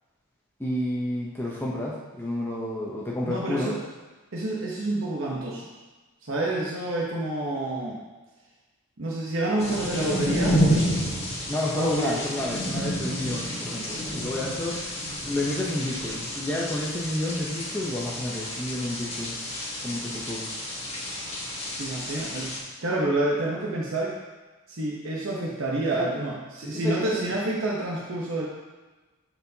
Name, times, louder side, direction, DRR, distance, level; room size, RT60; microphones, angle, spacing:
voice 1, 0.6-3.7 11.5-14.8 15.2-19.4 19.8-20.5 26.6-27.3, left 1 dB, 10° left, -5 dB, 0.8 m, -30 dB
voice 2, 3.2-3.8 4.3-5.7 6.2-8.0 9.0-10.6 11.8-12.2 21.8-22.5 22.8-24.1 24.7-28.5, right 1 dB, 60° right, -4 dB, 0.9 m, -28 dB
sound 1, 9.6-22.6, equal, 30° left, 1.4 m, -30 dB
10.5 x 4.5 x 2.8 m, 1.2 s
head